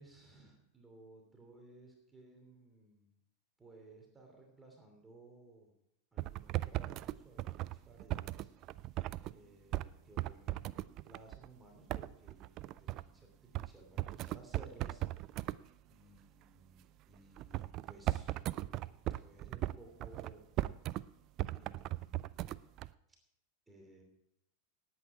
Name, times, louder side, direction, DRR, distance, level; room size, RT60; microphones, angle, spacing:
voice 1, 0.0-3.2 3.6-5.7 6.1-8.5 8.8-9.0 9.3-10.8 11.0-15.6 15.9-20.5 21.5-22.6 23.7-24.0, right 2 dB, 10° right, 1 dB, 2.9 m, -58 dB
sound 1, 6.2-9.3 9.7-9.9 10.2-11.5 11.9-13.1 13.5-13.7 14.0-15.6 17.4-21.0 21.4-22.9, right 16 dB, 35° right, 0.4 m, -38 dB
18.5 x 8.5 x 4.9 m, 0.82 s
figure-of-eight pair, 90°, 0 cm